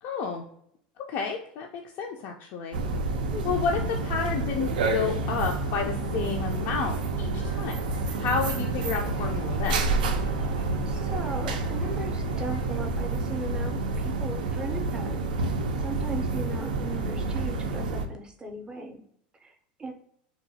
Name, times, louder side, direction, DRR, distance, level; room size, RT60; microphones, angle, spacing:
voice 1, 0.0-0.5 1.1-2.8 3.4-7.8 8.2-9.8, left 5 dB, 55° left, 2 dB, 0.3 m, -30 dB
sound 1, 2.7-18.0, right 3 dB, 90° right, 0.3 m, -29 dB
sound 2, 7.4-14.0, left 2 dB, 85° left, 0.8 m, -51 dB
voice 2, 10.9-15.3 15.8-19.0 19.4-19.9, right 3 dB, 20° right, 5 dB, 0.5 m, -37 dB
2.9 x 2.1 x 2.7 m, 0.70 s
supercardioid pair, 110°, 5 cm